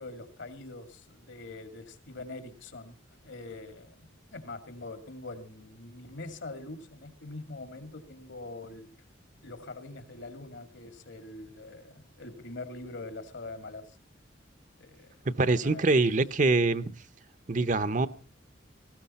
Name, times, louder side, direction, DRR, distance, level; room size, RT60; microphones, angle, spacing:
voice 1, 0.0-2.9 3.2-8.9 9.4-14.0 14.8-15.1 15.5-15.9, left 2 dB, 65° left, 10 dB, 2.2 m, -43 dB
voice 2, 15.4-16.9 17.5-18.1, right 3 dB, 40° right, 14 dB, 0.7 m, -24 dB
19.0 x 16.0 x 4.2 m, 0.37 s
head